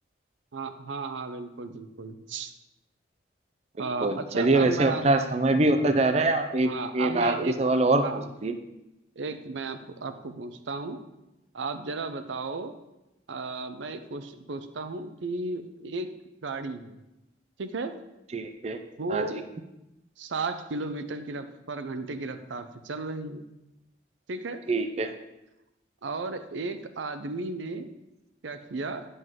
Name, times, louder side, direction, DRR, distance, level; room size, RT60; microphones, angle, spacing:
voice 1, 0.5-2.5 3.8-5.0 6.6-7.6 8.0-8.2 9.2-11.0 11.5-12.7 13.3-16.1 16.4-17.0 17.6-17.9 19.0-19.4 20.2-23.5 24.3-24.6 26.0-27.9 28.4-29.1, right 3 dB, 80° right, 9 dB, 0.6 m, -34 dB
voice 2, 3.8-8.0 8.4-8.5 18.3-18.8 19.1-19.4 24.7-25.1, right 2 dB, 35° right, 7 dB, 0.4 m, -24 dB
9.5 x 5.4 x 3.7 m, 0.94 s
head